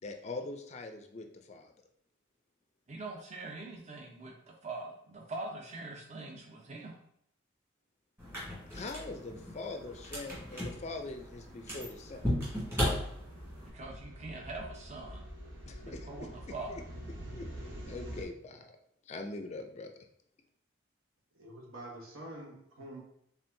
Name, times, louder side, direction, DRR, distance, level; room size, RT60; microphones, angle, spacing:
voice 1, 0.0-1.7 8.7-12.3 15.7-16.8 17.3-18.8 19.0-19.9, left 3 dB, 35° left, 5 dB, 0.4 m, -43 dB
voice 2, 2.9-6.9 13.7-15.3 15.8-16.7, right 2 dB, 35° right, 0 dB, 0.6 m, -43 dB
sound 1, 8.2-13.7, equal, 10° right, 1.5 m, -36 dB
sound 2, 9.6-18.2, equal, 70° right, 0.9 m, -47 dB
voice 3, 21.3-23.0, right 1 dB, 85° right, -1 dB, 1.2 m, -46 dB
4.4 x 3.6 x 2.6 m, 0.71 s
head